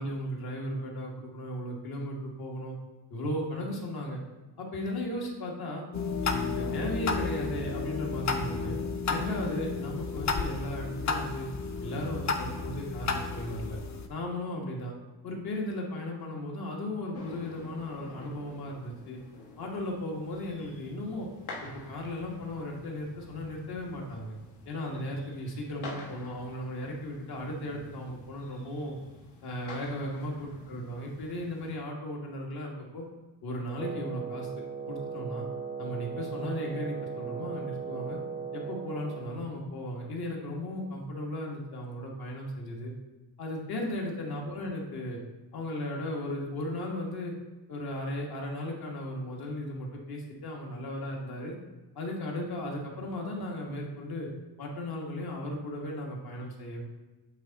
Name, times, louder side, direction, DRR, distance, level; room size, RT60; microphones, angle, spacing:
voice 1, 0.0-2.7 3.1-4.2 4.6-5.8 6.2-8.8 9.1-11.5 11.8-13.8 14.1-14.9 15.2-19.2 19.6-21.3 21.6-24.3 24.6-28.9 29.4-33.0 33.4-34.5 34.9-35.5 35.8-38.2 38.5-42.9 43.4-45.2 45.5-47.3 47.7-51.5 51.9-54.3 54.6-56.8, left 1 dB, 65° left, -1 dB, 1.5 m, -36 dB
sound 1, 5.9-14.1, left 4 dB, 45° left, 0.6 m, -32 dB
sound 2, 17.1-31.8, left 2 dB, 80° left, 1.4 m, -48 dB
Wind instrument woodwind instrument, 33.7-39.4, right 6 dB, 20° right, 0.3 m, -38 dB
8.3 x 3.6 x 4.0 m, 1.2 s
wide cardioid pair, 165°, 40 cm